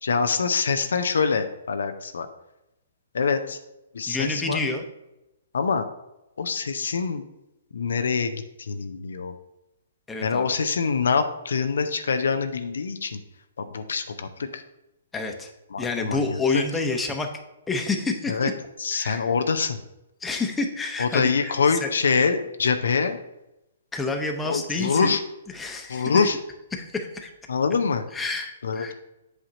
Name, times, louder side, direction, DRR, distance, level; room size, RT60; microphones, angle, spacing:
voice 1, 0.0-2.3 3.1-3.6 3.9-4.6 5.5-5.9 6.4-7.2 7.7-9.3 10.2-13.2 13.6-14.6 15.7-16.6 18.3-18.5 18.8-19.8 21.0-23.2 24.4-25.2 25.9-26.4 27.5-28.0 28.6-28.9, left 5 dB, 70° left, 8 dB, 0.5 m, -25 dB
voice 2, 4.1-4.8 10.1-10.5 15.1-15.5 15.8-17.3 17.7-18.5 18.9-19.3 20.2-21.9 23.9-25.2 25.5-26.3 26.7-27.3 28.1-28.9, left 3 dB, 10° left, 3 dB, 0.9 m, -28 dB
8.0 x 2.8 x 6.1 m, 0.93 s
figure-of-eight pair, 125°, 0 cm